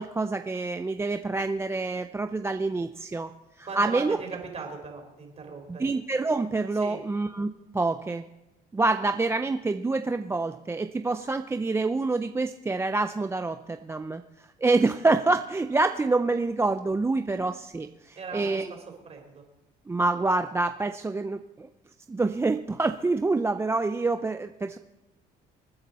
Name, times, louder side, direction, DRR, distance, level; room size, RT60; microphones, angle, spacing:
voice 1, 0.0-3.3 3.6-4.2 5.7-8.2 8.7-14.2 14.6-18.7 19.9-21.7 22.1-24.8, right 3 dB, 15° right, 7 dB, 0.5 m, -27 dB
voice 2, 3.7-5.9 6.8-7.0 18.2-18.6 19.1-19.4, right 5 dB, 40° right, 2 dB, 4.1 m, -38 dB
26.5 x 9.6 x 4.2 m, 1.0 s
cardioid pair, 110°, 17 cm